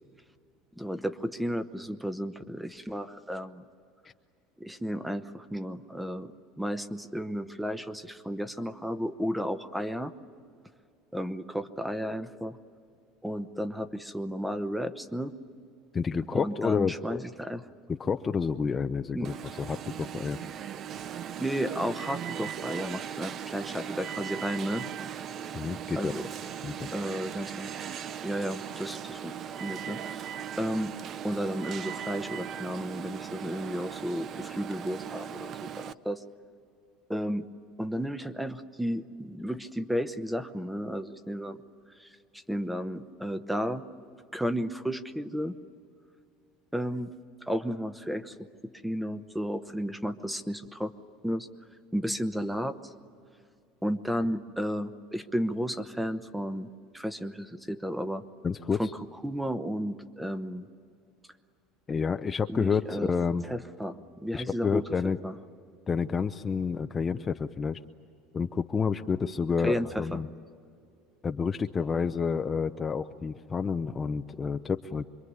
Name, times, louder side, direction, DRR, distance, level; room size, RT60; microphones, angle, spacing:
voice 1, 0.8-3.6 4.6-10.1 11.1-12.6 13.2-15.3 16.3-17.6 19.1-19.3 21.4-24.9 26.0-26.3 26.9-27.7 28.2-30.3 30.6-30.9 31.2-36.2 37.1-37.5 37.8-41.6 42.0-42.1 42.3-43.8 44.3-45.6 46.7-47.1 47.4-50.9 51.2-51.5 51.9-52.7 53.8-56.7 56.9-58.2 58.8-58.9 59.2-60.7 62.5-63.1 63.4-65.3 69.6-70.2, equal, 5° right, 11 dB, 0.9 m, -33 dB
voice 2, 15.9-17.2 17.9-20.4 25.5-26.1 26.6-26.9 58.4-58.8 61.9-63.4 64.3-65.2 65.9-67.8 68.3-70.3 71.2-75.1, left 5 dB, 25° left, 7 dB, 0.6 m, -29 dB
Alarm, 19.2-35.9, right 9 dB, 40° right, 0.6 m, -38 dB
26.0 x 22.5 x 9.6 m, 2.4 s
supercardioid pair, 125°, 0 cm